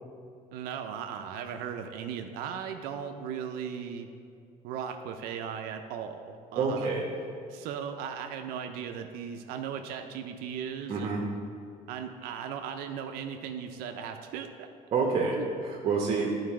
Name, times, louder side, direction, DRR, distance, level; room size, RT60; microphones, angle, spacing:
voice 1, 0.5-4.1 4.6-6.9 7.5-11.3 11.9-14.7 15.3-15.5, right 8 dB, 80° right, 6 dB, 0.5 m, -37 dB
voice 2, 6.6-7.0 10.9-11.2 14.9-15.4 15.6-16.3, right 5 dB, 45° right, -1 dB, 1.0 m, -27 dB
9.7 x 4.0 x 4.7 m, 2.4 s
cardioid pair, 130°, 15 cm